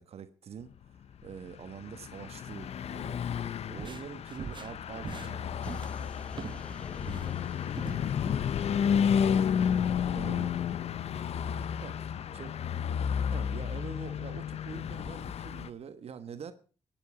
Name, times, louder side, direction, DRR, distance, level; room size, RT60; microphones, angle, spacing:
voice 1, 0.0-3.2 3.7-5.5 10.1-10.5 11.8-11.9 12.3-12.5 13.3-16.5, right 7 dB, 65° right, 1.2 m, -44 dB
Car passing by / Truck, 1.3-15.7, left 8 dB, 65° left, 0.7 m, -31 dB
sound 1, 3.6-6.7 7.0-8.0, right 6 dB, 45° right, 0.8 m, -43 dB
sound 2, 5.6-10.0, equal, 10° left, 2.2 m, -54 dB
voice 2, 6.6-13.3, left 2 dB, 40° left, 4.9 m, -55 dB
22.5 x 9.2 x 4.9 m
cardioid pair, 80°, 11 cm